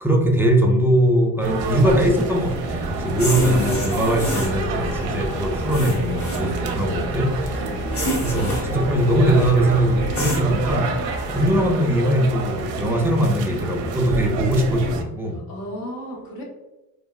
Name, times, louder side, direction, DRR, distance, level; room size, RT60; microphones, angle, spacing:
voice 1, 0.0-7.6 8.2-15.4, right 1 dB, 5° right, 1 dB, 0.4 m, -21 dB
sound 1, 1.4-15.0, right 4 dB, 75° right, 0.5 m, -29 dB
sound 2, 1.6-10.7, equal, 30° left, 1.0 m, -31 dB
sound 3, 3.1-11.7, left 1 dB, 90° left, 0.6 m, -34 dB
voice 2, 3.2-3.8 7.6-8.0 11.2-11.4 15.3-16.4, equal, 55° left, -2 dB, 1.1 m, -36 dB
2.7 x 2.1 x 2.3 m, 0.99 s
supercardioid pair, 65°, 43 cm